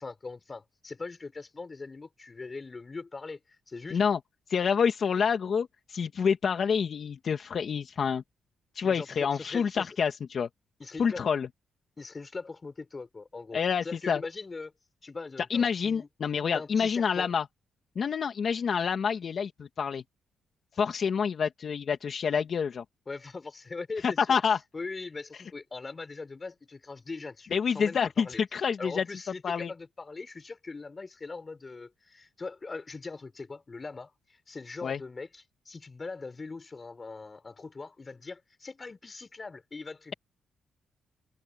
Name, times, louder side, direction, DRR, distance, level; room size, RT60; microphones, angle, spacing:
voice 1, 0.0-3.4 3.7-4.0 8.8-9.9 10.8-11.2 12.0-14.7 15.0-16.1 16.5-17.3 23.1-24.3 24.7-28.4 28.8-40.2, left 3 dB, 30° left, 5.7 m, -41 dB
voice 2, 4.5-8.2 8.7-10.5 11.0-11.5 13.5-14.2 15.5-17.5 18.0-20.0 20.7-22.8 24.0-24.6 27.5-29.2 29.4-29.7 34.8-35.0, left 6 dB, 55° left, 1.9 m, -28 dB
cardioid pair, 95°, 0 cm